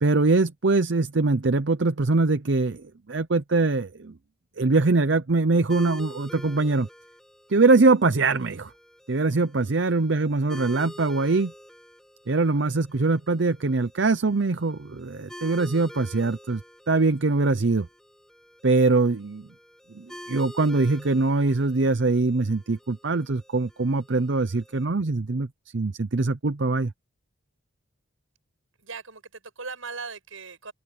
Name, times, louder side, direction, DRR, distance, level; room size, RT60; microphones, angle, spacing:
voice 1, 0.0-4.1 4.6-6.9 7.5-8.7 9.1-11.5 12.3-16.6 16.9-17.9 18.6-19.5 19.9-26.9, right 3 dB, 60° right, 0.7 m, -23 dB
sound 1, 5.7-24.8, equal, 5° left, 7.5 m, -47 dB
voice 2, 28.8-30.7, right 4 dB, 85° right, 7.4 m, -38 dB
open air
head